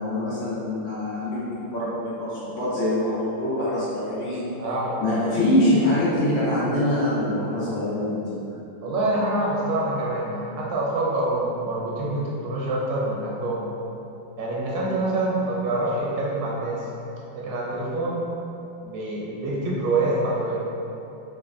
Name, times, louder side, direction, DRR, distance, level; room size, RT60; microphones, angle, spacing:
voice 1, 0.0-4.5 5.0-8.3, left 1 dB, 85° left, -10 dB, 1.7 m, -24 dB
voice 2, 4.5-5.0 8.8-13.7 14.4-16.8 17.3-18.2 18.8-20.6, right 2 dB, 80° right, -5 dB, 1.3 m, -26 dB
4.4 x 2.1 x 2.4 m, 2.9 s
omnidirectional pair, 2.0 m